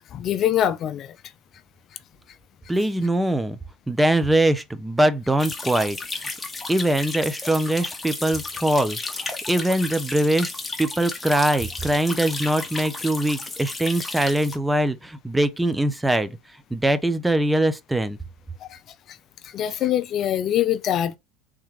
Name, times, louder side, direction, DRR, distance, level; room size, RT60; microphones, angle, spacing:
voice 1, 0.1-1.1 19.5-21.2, left 11 dB, 45° left, 0.4 m, -23 dB
voice 2, 2.7-3.6 3.9-6.0 6.7-9.0 9.5-10.5 10.8-16.4 16.7-18.2, right 1 dB, 5° right, 0.5 m, -22 dB
sound 1, 5.4-14.6, left 3 dB, 15° left, 1.0 m, -33 dB
3.5 x 3.2 x 3.1 m
supercardioid pair, 100°, 0 cm